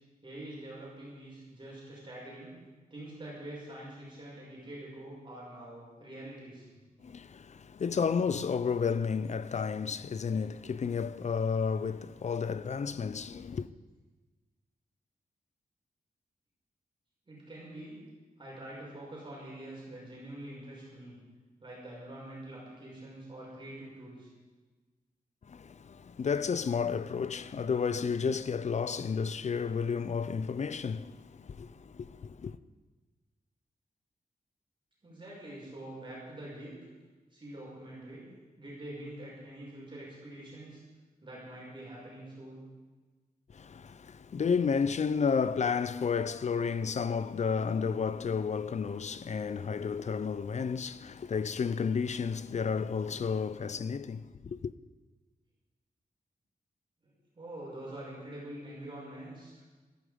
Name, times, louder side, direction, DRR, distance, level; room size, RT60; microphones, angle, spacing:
voice 1, 0.2-2.5 2.9-6.7 17.3-18.0 18.4-21.2 21.6-24.3 35.0-36.8 37.3-38.2 38.5-40.8 41.2-42.6 57.0-59.6, right 1 dB, 30° right, 5.9 m, -45 dB
voice 2, 7.0-13.7 25.5-32.6 43.5-54.7, left 6 dB, 50° left, 0.6 m, -32 dB
15.5 x 13.5 x 5.1 m
wide cardioid pair, 120°, 15 cm